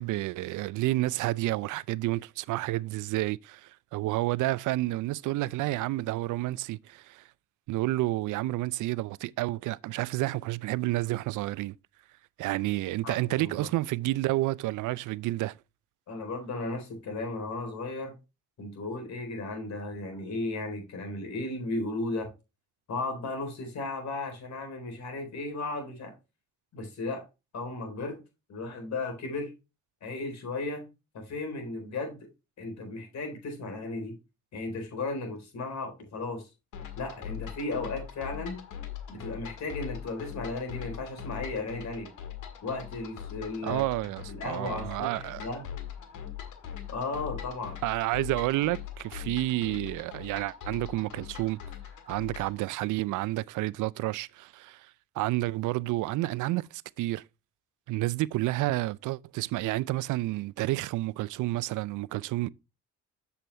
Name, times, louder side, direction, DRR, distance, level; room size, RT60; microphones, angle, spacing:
voice 1, 0.0-7.2 7.7-11.7 12.4-15.6 43.6-45.4 47.8-51.6 52.1-54.9 55.2-57.2 57.9-62.5, right 18 dB, 80° right, 0.5 m, -30 dB
voice 2, 13.0-13.7 16.1-18.1 18.6-22.3 22.9-26.1 26.7-27.2 27.5-28.2 28.5-29.5 30.0-30.8 31.1-32.2 32.6-34.1 34.5-36.4 37.0-38.6 39.1-42.1 42.6-43.8 44.3-45.6 46.9-47.8, left 2 dB, 65° left, 4.1 m, -35 dB
sound 1, 36.7-52.6, left 9 dB, 80° left, 1.8 m, -41 dB
7.6 x 7.0 x 3.3 m
cardioid pair, 90°, 30 cm